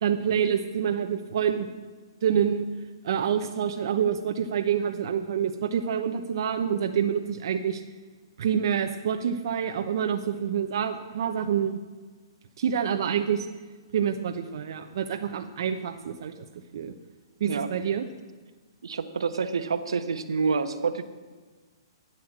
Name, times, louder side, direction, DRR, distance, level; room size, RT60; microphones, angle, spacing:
voice 1, 0.0-1.7 2.2-2.7 3.0-7.8 8.4-11.8 12.6-13.5 13.9-16.3 16.7-16.9 17.4-18.1, right 8 dB, 60° right, 5 dB, 0.9 m, -27 dB
voice 2, 18.8-21.0, right 5 dB, 85° right, 9 dB, 1.1 m, -28 dB
12.5 x 9.3 x 7.4 m, 1.4 s
hypercardioid pair, 145°, 3 cm